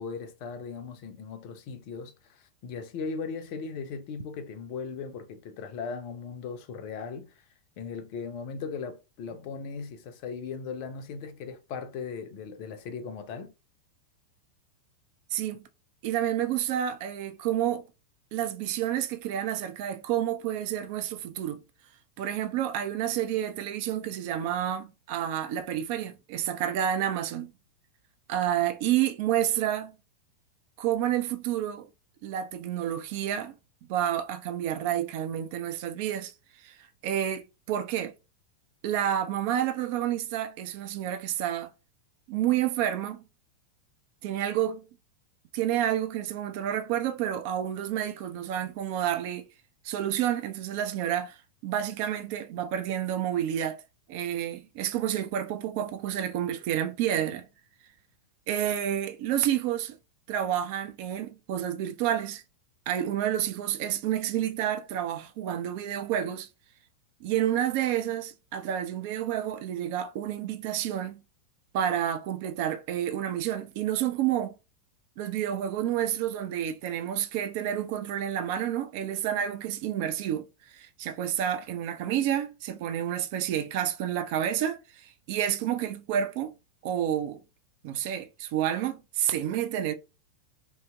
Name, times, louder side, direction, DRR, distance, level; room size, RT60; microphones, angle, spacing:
voice 1, 0.0-7.4 7.8-13.5, left 5 dB, 45° left, 0.5 m, -38 dB
voice 2, 15.3-15.6 16.0-17.9 18.3-21.6 22.2-27.5 28.3-29.9 30.8-31.9 32.2-33.5 33.9-36.3 36.6-36.7 37.0-38.1 38.8-41.7 42.3-43.2 44.2-44.8 45.5-49.5 49.8-53.8 54.1-57.5 58.5-60.0 60.3-62.4 62.9-66.5 67.2-71.2 71.7-74.5 75.2-86.5 86.8-87.4 87.8-89.9, right 11 dB, 45° right, 0.4 m, -29 dB
2.8 x 2.8 x 2.2 m
figure-of-eight pair, 90°, 0 cm